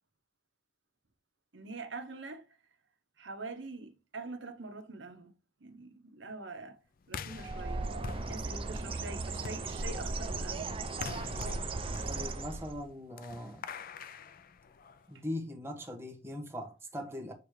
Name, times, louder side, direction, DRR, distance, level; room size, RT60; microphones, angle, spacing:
voice 1, 1.5-2.5 3.2-5.3 5.6-6.8 7.1-7.8 8.3-10.7, right 3 dB, 70° right, 1.1 m, -44 dB
sound 1, 7.0-15.2, left 5 dB, 50° left, 0.5 m, -46 dB
Bird, 7.3-12.9, right 3 dB, 30° right, 0.6 m, -37 dB
voice 2, 12.0-13.7 15.1-17.3, left 1 dB, 15° right, 1.4 m, -40 dB
8.2 x 3.3 x 4.9 m
head